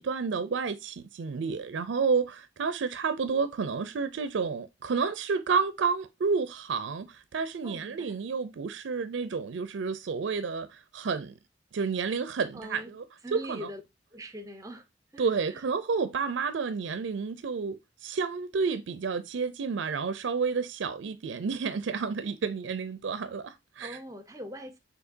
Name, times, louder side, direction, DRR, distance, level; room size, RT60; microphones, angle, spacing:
voice 1, 0.0-11.3 11.7-13.0 13.3-13.6 15.2-24.0, right 5 dB, 80° right, 0.4 m, -30 dB
voice 2, 7.6-8.1 12.5-12.9 13.2-13.8 14.1-14.9 15.1-15.6 23.8-24.8, equal, 20° right, 0.7 m, -42 dB
6.4 x 2.7 x 2.6 m
head